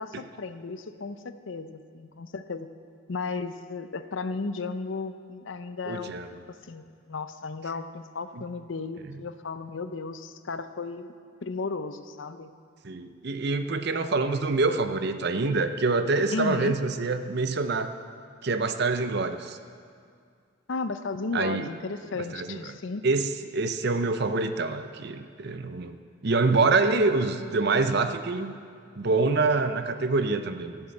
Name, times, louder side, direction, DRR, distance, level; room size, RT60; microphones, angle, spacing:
voice 1, 0.0-2.7 3.1-11.1 11.4-12.5 16.3-16.8 20.7-23.0, left 3 dB, 65° left, 11 dB, 0.6 m, -34 dB
voice 2, 5.9-6.3 8.4-8.5 12.8-17.9 18.4-19.6 21.3-21.7 22.3-22.6 23.0-28.5 29.0-30.8, right 3 dB, 55° right, 9 dB, 0.7 m, -26 dB
14.5 x 7.4 x 7.7 m, 2.2 s
head